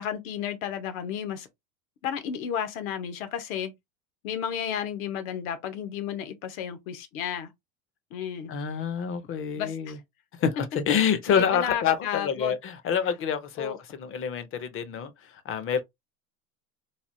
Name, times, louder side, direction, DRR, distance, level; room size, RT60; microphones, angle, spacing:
voice 1, 0.0-1.5 2.0-3.7 4.2-7.5 8.1-8.5 9.6-10.0 11.3-12.5 13.6-13.8, left 9 dB, 70° left, 1.0 m, -32 dB
voice 2, 8.5-10.0 10.4-15.8, left 7 dB, 30° left, 0.6 m, -27 dB
3.3 x 2.4 x 2.6 m
hypercardioid pair, 105°, 44 cm